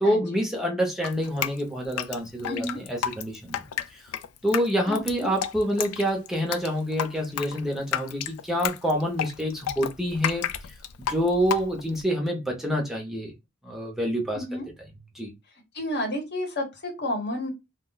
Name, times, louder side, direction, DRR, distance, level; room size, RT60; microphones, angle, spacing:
voice 1, 0.0-3.7 3.9-4.1 4.4-10.7 11.1-13.3 13.6-14.6 15.1-15.3, equal, ahead, 0.6 m, -27 dB
Drip, 1.0-12.0, left 9 dB, 90° left, 0.3 m, -32 dB
voice 2, 2.5-2.8 4.9-5.3 14.3-14.7 15.7-17.5, left 1 dB, 50° left, 1.0 m, -31 dB
2.3 x 2.1 x 3.7 m
head